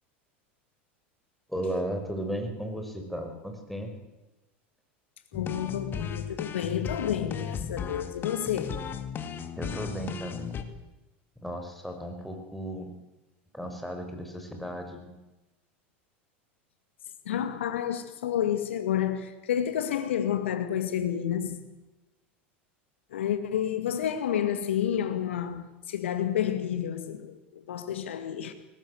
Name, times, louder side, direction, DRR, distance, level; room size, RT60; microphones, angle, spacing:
voice 1, 1.5-3.9 9.6-10.6 11.4-12.9 13.5-15.2, equal, ahead, 5.5 m, -35 dB
voice 2, 5.3-8.8 17.3-21.6 23.1-28.5, left 9 dB, 85° left, 2.2 m, -30 dB
sound 1, 5.3-10.6, left 7 dB, 35° left, 2.6 m, -35 dB
21.0 x 19.5 x 8.0 m
hypercardioid pair, 100°, 6 cm